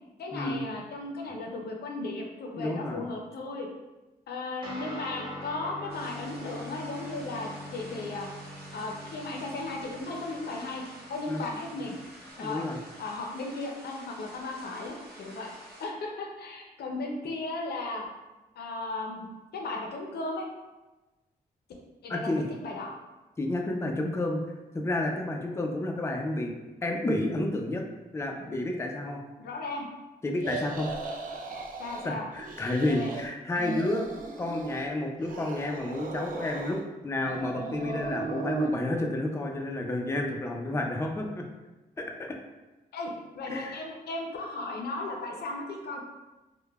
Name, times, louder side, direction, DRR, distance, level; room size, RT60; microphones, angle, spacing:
voice 1, 0.2-3.7 4.3-8.3 8.7-12.0 12.4-12.6 13.0-15.5 15.8-18.0 18.6-19.3 19.5-20.5 22.0-22.9 24.0-24.1 29.4-29.9 31.8-32.3 32.8-33.1 42.9-46.0, left 2 dB, 80° left, 1 dB, 0.5 m, -36 dB
voice 2, 2.6-3.1 11.3-11.4 12.4-12.8 22.1-22.4 23.4-24.4 24.7-27.8 28.1-29.2 30.2-30.9 32.0-34.1 34.4-41.4 42.0-42.4 43.5-43.8, left 1 dB, 15° left, 2 dB, 0.4 m, -30 dB
Guitar, 4.6-12.3, left 1 dB, 30° right, 0.8 m, -44 dB
sound 1, 5.9-15.9, right 1 dB, 75° right, 0.9 m, -49 dB
sound 2, 30.4-32.1 32.4-33.2 33.5-34.9 35.2-36.8 37.2-38.7, right 3 dB, 60° right, 0.4 m, -36 dB
3.1 x 2.1 x 2.3 m, 1.1 s
cardioid pair, 55°, 16 cm